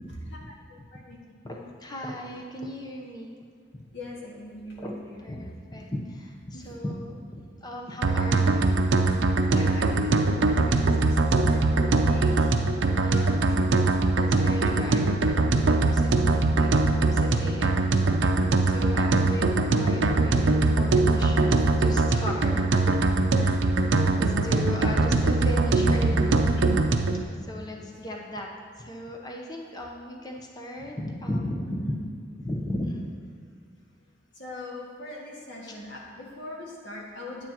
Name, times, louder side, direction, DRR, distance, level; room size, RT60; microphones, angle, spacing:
voice 1, 0.1-0.5 1.4-3.4 3.7-3.9 4.8-4.9 5.2-8.8 13.0-13.4 14.1-18.2 18.7-21.5 21.8-22.6 23.4-23.6 24.2-26.5 27.4-28.5 28.8-31.9 32.4-33.0, left 1 dB, 20° left, 0 dB, 0.8 m, -36 dB
voice 2, 0.7-1.2 1.5-1.7 3.9-5.5 6.5-6.7 9.5-12.6 13.0-13.7 15.6-15.7 18.3-18.6 21.5-21.7 22.7-23.0 23.3-23.6 23.9-24.1 26.6-26.7 27.8-28.2 31.7-32.0 34.3-37.5, left 1 dB, 70° left, -4 dB, 1.7 m, -41 dB
sound 1, 8.0-27.2, right 3 dB, 75° right, 0.5 m, -22 dB
9.4 x 8.7 x 2.9 m, 2.1 s
head